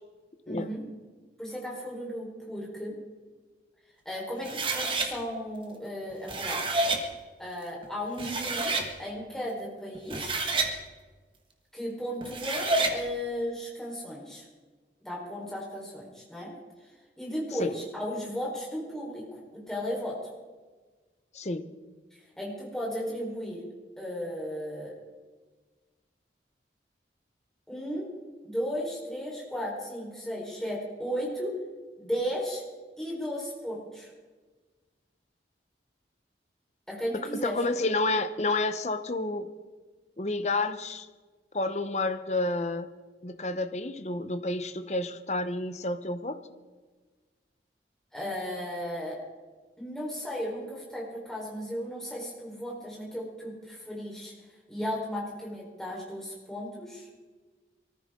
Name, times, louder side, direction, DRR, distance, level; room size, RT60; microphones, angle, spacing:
voice 1, 0.5-0.8 1.4-2.9 4.0-6.8 7.4-8.7 9.0-10.4 11.7-14.4 15.0-16.5 17.2-20.2 22.4-23.6 24.0-25.0 27.7-28.1 28.4-31.5 32.0-32.6 33.0-34.1 36.9-37.5 48.1-49.2 49.8-54.3 54.7-57.1, equal, 5° left, -3 dB, 4.3 m, -35 dB
sound 1, 4.4-5.1 6.1-7.0 7.8-7.9 8.2-8.9 9.9-10.7 12.2-13.0, right 2 dB, 30° right, 1.6 m, -28 dB
voice 2, 21.3-21.7 37.3-39.5 40.2-41.1 41.5-42.9 43.2-46.4, left 2 dB, 40° left, 9 dB, 0.9 m, -30 dB
23.0 x 14.5 x 3.8 m, 1.4 s
head